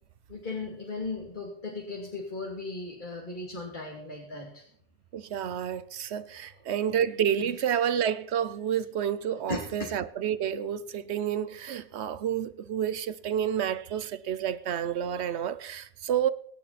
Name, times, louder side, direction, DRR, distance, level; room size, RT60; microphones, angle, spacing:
voice 1, 0.3-4.6 6.4-6.5 7.4-7.6 9.5-9.9, left 3 dB, 40° left, 3.0 m, -37 dB
voice 2, 5.1-16.3, right 9 dB, 65° right, 1.1 m, -29 dB
24.0 x 11.0 x 4.2 m
omnidirectional pair, 1.2 m